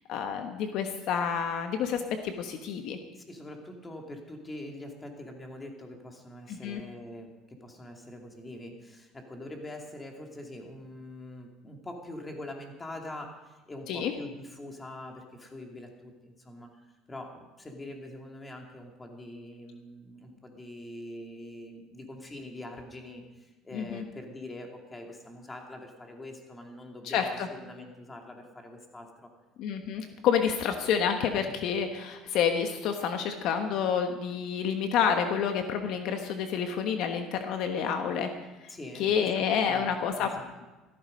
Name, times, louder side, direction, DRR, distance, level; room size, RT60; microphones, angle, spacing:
voice 1, 0.1-3.0 6.5-6.8 13.9-14.1 23.7-24.0 27.0-27.3 29.6-38.3 39.0-40.3, left 7 dB, 65° left, 6 dB, 1.2 m, -29 dB
voice 2, 3.1-29.3 38.7-39.3 39.5-40.5, left 1 dB, 15° left, 2 dB, 2.6 m, -44 dB
15.0 x 13.5 x 5.3 m, 1.1 s
cardioid pair, 115°, 0 cm